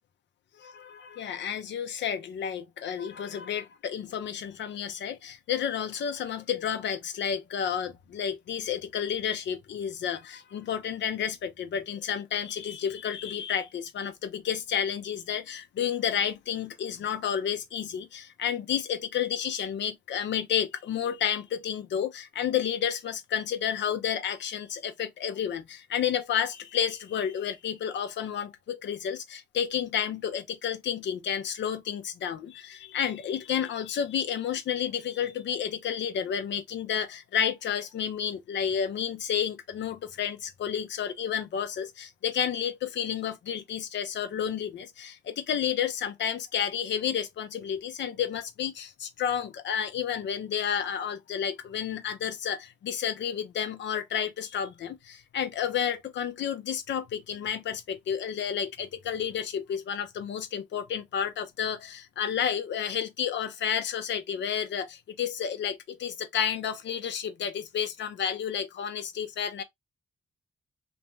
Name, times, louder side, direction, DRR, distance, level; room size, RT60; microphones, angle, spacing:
voice 1, 0.6-69.6, left 8 dB, 75° left, 0.6 m, -31 dB
2.5 x 2.2 x 3.1 m
supercardioid pair, 50°, 19 cm